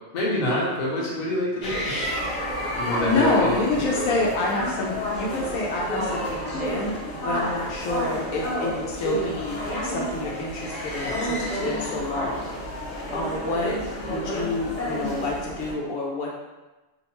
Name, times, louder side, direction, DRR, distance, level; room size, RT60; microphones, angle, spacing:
voice 1, 0.1-1.8 2.8-4.3 13.7-13.8, left 1 dB, 45° left, -5 dB, 0.6 m, -27 dB
sound 1, 1.6-15.7, equal, 65° left, 1.0 m, -30 dB
voice 2, 3.0-6.9 7.2-12.5 13.1-13.8 14.0-16.3, left 2 dB, 85° left, -2 dB, 1.0 m, -28 dB
2.7 x 2.0 x 2.9 m, 1.1 s
omnidirectional pair, 1.4 m